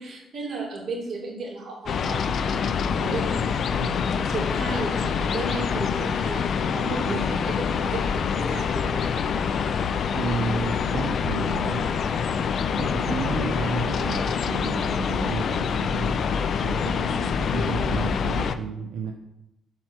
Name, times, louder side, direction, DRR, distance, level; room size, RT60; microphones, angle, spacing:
voice 1, 0.0-9.0, right 3 dB, 50° right, -2 dB, 2.4 m, -34 dB
sound 1, 1.9-18.5, left 6 dB, 60° left, 0.4 m, -26 dB
voice 2, 10.1-11.9 12.8-16.2 16.6-19.1, right 5 dB, 80° right, 3 dB, 0.6 m, -32 dB
5.7 x 4.5 x 6.0 m, 0.90 s
cardioid pair, 90°, 0 cm